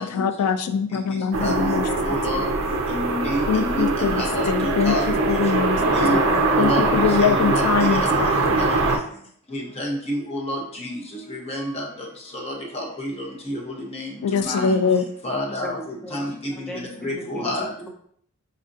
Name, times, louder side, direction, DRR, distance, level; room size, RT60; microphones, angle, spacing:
voice 1, 0.0-1.8 3.5-4.9 5.3-8.5 14.2-15.1, left 6 dB, 85° left, 10 dB, 0.3 m, -23 dB
sound 1, 1.3-9.0, right 3 dB, 60° right, 0.5 m, -22 dB
voice 2, 1.4-2.4 2.9-3.9 4.2-5.0 5.3-5.4 5.9-6.2 6.6-6.8 7.2-7.6 7.9-8.0 9.5-11.0 11.3-11.8 12.3-13.6 13.9-14.7 15.2-15.8 16.1-16.3 17.0-17.7, left 1 dB, 30° left, -2 dB, 0.8 m, -28 dB
voice 3, 16.0-17.9, equal, 5° left, 0 dB, 0.3 m, -38 dB
4.2 x 2.5 x 2.6 m, 0.63 s
head